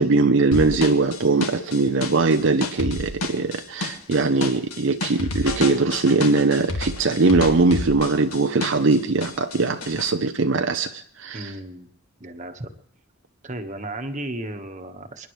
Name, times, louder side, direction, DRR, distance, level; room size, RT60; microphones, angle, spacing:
voice 1, 0.0-11.6, right 3 dB, 60° right, 7 dB, 0.6 m, -21 dB
sound 1, 0.5-9.0 9.2-10.1, left 2 dB, 85° left, 2.0 m, -30 dB
voice 2, 11.3-11.9 12.2-12.7 13.4-15.3, right 1 dB, 35° right, 7 dB, 1.3 m, -34 dB
27.0 x 10.5 x 3.2 m, 0.70 s
head